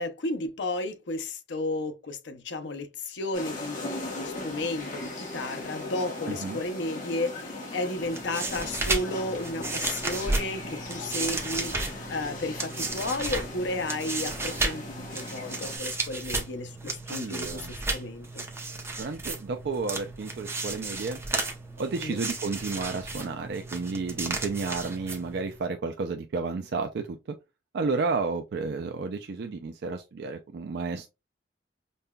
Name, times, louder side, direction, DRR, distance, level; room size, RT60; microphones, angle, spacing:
voice 1, 0.0-18.5 22.0-22.2, left 2 dB, 75° left, 0.6 m, -33 dB
sound 1, 3.3-15.8, left 2 dB, 45° left, 1.2 m, -39 dB
voice 2, 6.3-6.6 17.1-17.7 19.0-21.2 21.8-27.4 27.7-31.1, right 4 dB, 65° right, 0.4 m, -32 dB
sound 2, 8.0-25.6, right 2 dB, 15° right, 0.6 m, -34 dB
5.3 x 2.2 x 2.2 m
head